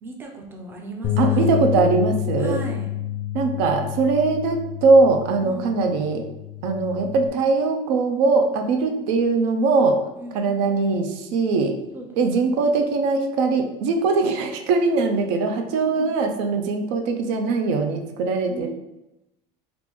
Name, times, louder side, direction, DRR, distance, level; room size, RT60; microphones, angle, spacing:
voice 1, 0.0-1.7 2.4-2.9 5.4-5.9 9.0-9.1 10.2-10.4 11.9-12.1 12.3-12.8 15.8-16.2 18.5-18.7, right 3 dB, 15° right, 2 dB, 0.4 m, -37 dB
Bass guitar, 1.0-7.3, left 12 dB, 45° left, 0.4 m, -28 dB
voice 2, 1.2-2.6 3.3-6.2 6.6-10.0 10.3-11.7 12.2-18.7, right 3 dB, 90° right, 5 dB, 0.5 m, -21 dB
3.5 x 2.5 x 3.0 m, 0.92 s
cardioid pair, 155°, 15 cm